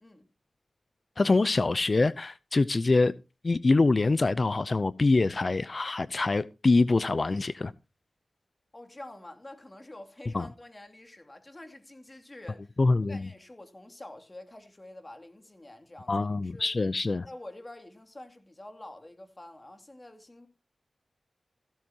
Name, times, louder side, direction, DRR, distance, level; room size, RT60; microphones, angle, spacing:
voice 1, 1.2-3.1 3.4-7.7 10.3-10.5 12.8-13.3 16.1-17.3, left 3 dB, 50° left, 0.5 m, -25 dB
voice 2, 8.7-12.7 13.1-16.7 17.2-20.5, left 1 dB, 30° left, 2.6 m, -47 dB
15.5 x 12.0 x 2.9 m
cardioid pair, 50°, 0 cm